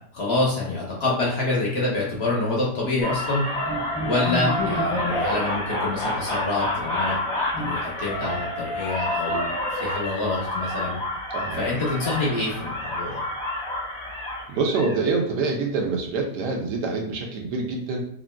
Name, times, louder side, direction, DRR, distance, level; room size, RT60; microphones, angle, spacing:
voice 1, 0.1-3.4 4.0-7.2 7.5-11.0 11.6-13.2, left 2 dB, 50° left, -4 dB, 0.9 m, -26 dB
sound 1, 3.0-15.0, left 1 dB, 25° left, 0.9 m, -28 dB
voice 2, 11.3-11.8 14.5-18.0, right 3 dB, 75° right, 1 dB, 1.2 m, -26 dB
3.5 x 2.5 x 2.2 m, 0.69 s
omnidirectional pair, 1.8 m